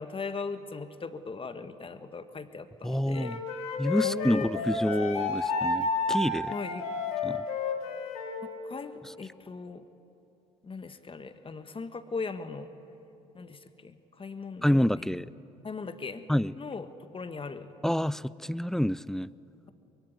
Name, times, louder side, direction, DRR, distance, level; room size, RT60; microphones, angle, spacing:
voice 1, 0.0-3.4 4.0-4.9 6.5-6.9 8.4-9.8 10.6-12.7 13.3-15.1 15.6-16.2 16.6-16.9 17.1-17.7, left 4 dB, 30° left, 10 dB, 1.6 m, -39 dB
voice 2, 2.8-3.4 3.8-6.5 7.2-7.5 14.6-15.3 16.3-16.5 17.8-19.3, equal, ahead, 20 dB, 0.5 m, -28 dB
Wind instrument woodwind instrument, 3.1-8.4, left 3 dB, 85° left, 2.2 m, -31 dB
24.5 x 22.0 x 9.5 m, 3.0 s
hypercardioid pair, 55°, 18 cm